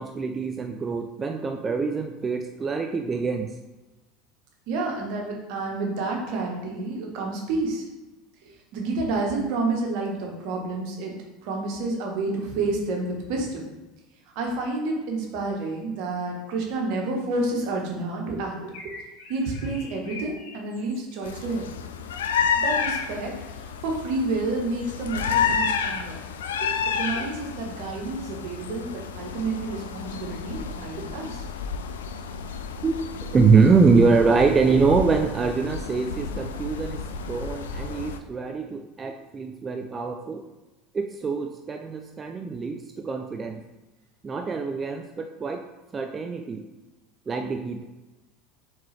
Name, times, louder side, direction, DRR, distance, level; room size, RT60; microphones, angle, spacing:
voice 1, 0.0-3.5 32.8-40.4 40.9-43.6 44.2-45.6 45.9-46.6 47.3-47.8, right 4 dB, 25° right, 5 dB, 0.3 m, -24 dB
voice 2, 4.7-7.8 8.4-11.2 11.4-13.6 14.3-18.7 19.3-21.7 22.6-26.2 26.6-31.4, right 3 dB, 65° right, 0 dB, 1.2 m, -29 dB
sound 1, 18.7-21.2, left 2 dB, 60° left, 1.5 m, -43 dB
sound 2, 21.2-38.2, left 6 dB, 90° left, 0.3 m, -30 dB
4.4 x 3.6 x 3.3 m, 1.1 s
hypercardioid pair, 90°, 0 cm